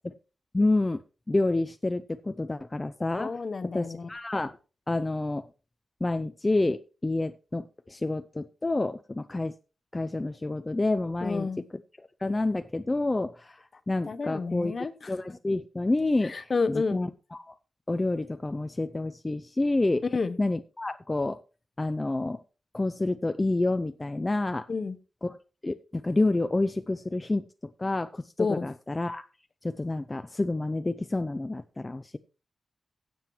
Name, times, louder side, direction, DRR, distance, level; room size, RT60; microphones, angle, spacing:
voice 1, 0.5-1.0 1.3-3.4 3.7-4.6 4.9-5.5 6.0-9.5 9.9-11.5 12.2-14.7 15.1-17.5 17.9-20.0 20.4-21.4 21.8-22.4 22.7-24.6 25.2-25.4 25.6-29.2 29.6-32.2, left 2 dB, 20° left, 10 dB, 0.4 m, -28 dB
voice 2, 3.2-4.1 11.2-11.6 14.1-15.1 16.2-17.0 20.1-20.4 24.7-25.0 28.4-28.7, left 4 dB, 40° left, 12 dB, 0.7 m, -30 dB
16.0 x 7.6 x 3.0 m, 0.34 s
wide cardioid pair, 145°, 0 cm